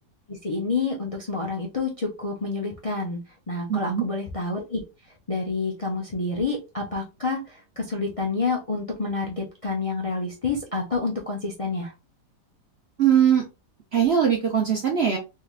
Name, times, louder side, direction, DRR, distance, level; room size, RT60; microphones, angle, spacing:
voice 1, 0.3-4.8 5.3-11.9, left 3 dB, 35° left, -2 dB, 0.5 m, -28 dB
voice 2, 3.7-4.1 13.0-13.4 13.9-15.2, right 8 dB, 55° right, 2 dB, 0.7 m, -20 dB
3.4 x 3.3 x 2.4 m, 0.26 s
omnidirectional pair, 1.7 m